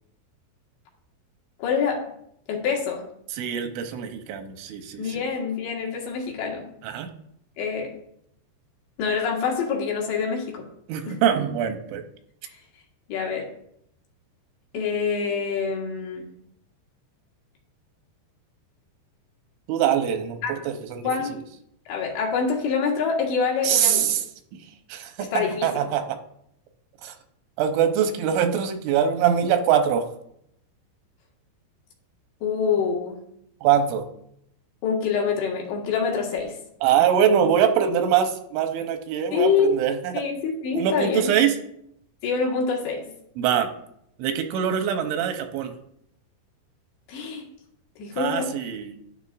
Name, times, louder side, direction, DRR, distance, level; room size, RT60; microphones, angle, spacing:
voice 1, 1.6-2.0 2.5-3.1 5.0-6.7 7.6-7.9 9.0-10.7 11.1-11.2 12.4-12.6 13.1-13.5 14.7-16.3 20.4-20.5 21.0-21.4 21.9-24.1 25.2-25.9 32.4-33.3 34.8-36.6 39.3-39.8 40.1-41.3 42.2-43.1 47.1-47.5 48.0-48.5, left 5 dB, 75° left, -1 dB, 3.6 m, -26 dB
voice 2, 3.4-5.0 6.8-7.1 10.9-12.0 19.7-21.1 23.6-24.2 24.9-26.2 27.0-27.1 27.6-30.1 33.6-34.0 36.8-40.2 40.7-41.6 43.4-43.7 44.2-45.7 48.2-49.0, right 8 dB, 90° right, 6 dB, 3.2 m, -23 dB
11.0 x 10.0 x 2.5 m, 0.74 s
omnidirectional pair, 5.4 m